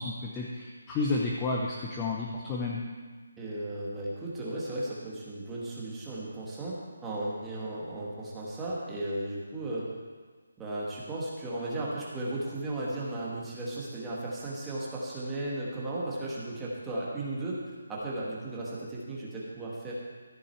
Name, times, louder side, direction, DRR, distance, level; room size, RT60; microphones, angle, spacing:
voice 1, 0.0-2.8, left 3 dB, 10° left, -3 dB, 0.6 m, -31 dB
voice 2, 3.4-9.9 10.6-17.6 17.9-19.9, right 1 dB, 5° right, -7 dB, 1.4 m, -35 dB
13.5 x 8.4 x 4.5 m, 1.5 s
hypercardioid pair, 175°, 0 cm